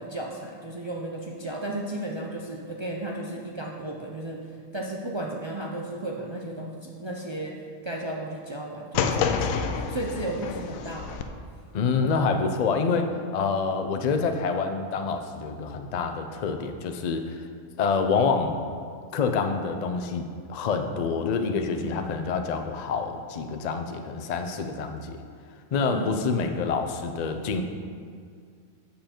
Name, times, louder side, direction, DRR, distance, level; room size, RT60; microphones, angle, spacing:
voice 1, 0.0-4.4 4.7-7.5 7.8-11.2 12.0-12.1 21.8-22.0 25.9-26.1, right 1 dB, 40° right, -1 dB, 0.4 m, -34 dB
sound 1, 8.9-11.2, left 6 dB, 75° left, 1.0 m, -28 dB
voice 2, 11.7-17.5 17.8-18.7 19.1-20.2 20.5-25.2 25.7-27.6, left 5 dB, 60° left, 6 dB, 0.4 m, -27 dB
7.7 x 6.9 x 4.4 m, 2.1 s
omnidirectional pair, 1.4 m